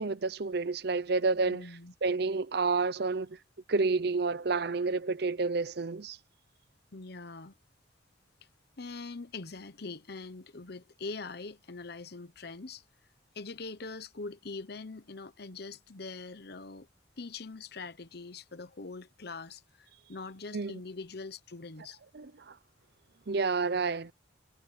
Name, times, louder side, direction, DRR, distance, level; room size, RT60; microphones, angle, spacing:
voice 1, 0.0-1.7 2.0-3.4 3.7-6.2 20.5-20.7 22.1-22.5 23.3-24.1, right 4 dB, 60° right, 0.7 m, -29 dB
voice 2, 1.5-1.9 6.9-7.5 8.8-12.8 13.3-16.9 17.2-22.0, left 3 dB, 55° left, 1.0 m, -43 dB
head